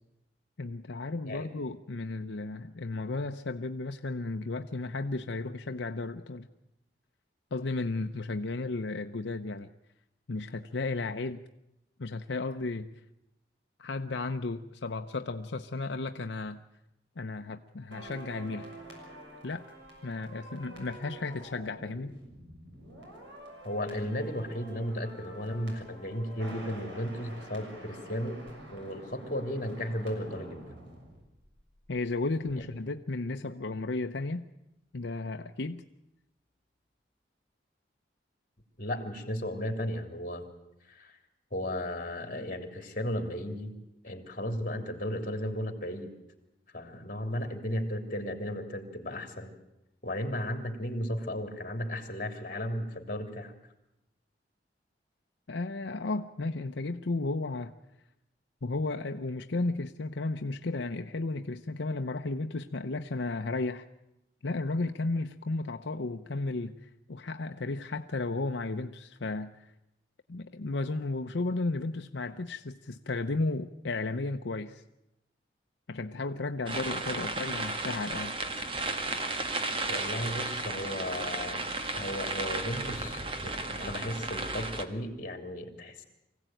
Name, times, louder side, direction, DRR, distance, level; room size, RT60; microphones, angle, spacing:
voice 1, 0.6-6.5 7.5-9.7 10.3-11.5 12.0-12.9 13.8-16.6 17.2-18.7 19.4-19.6 20.0-22.2 31.9-34.5 34.9-35.8 55.5-57.7 58.6-63.9 64.4-69.7 70.3-74.8 75.9-78.3, left 3 dB, 85° left, 6 dB, 0.7 m, -34 dB
sound 1, 17.9-32.1 32.3-32.5, right 1 dB, 85° right, 6.6 m, -48 dB
voice 2, 23.6-28.4 28.7-30.6 38.8-40.4 40.9-41.2 41.5-43.7 44.0-46.1 46.7-49.5 50.0-53.5 79.9-81.6 81.9-86.0, equal, 45° left, 5 dB, 3.2 m, -35 dB
sound 2, 76.7-84.8, right 2 dB, 30° right, 1.5 m, -34 dB
24.5 x 16.5 x 9.1 m, 0.90 s
head